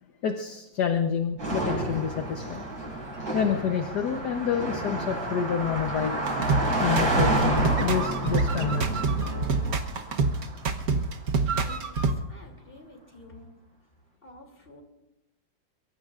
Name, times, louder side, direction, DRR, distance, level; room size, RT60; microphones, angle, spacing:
voice 1, 0.2-2.6 3.3-6.2 6.8-9.0 10.1-10.2, left 7 dB, 60° left, 5 dB, 1.5 m, -28 dB
Car passing by, 1.4-11.0, right 2 dB, 75° right, 7.3 m, -30 dB
sound 1, 6.3-12.1, right 4 dB, 55° right, 1.4 m, -26 dB
voice 2, 11.5-13.5 14.2-14.8, left 1 dB, 25° left, 2 dB, 3.2 m, -49 dB
23.5 x 23.0 x 2.5 m, 0.90 s
omnidirectional pair, 2.1 m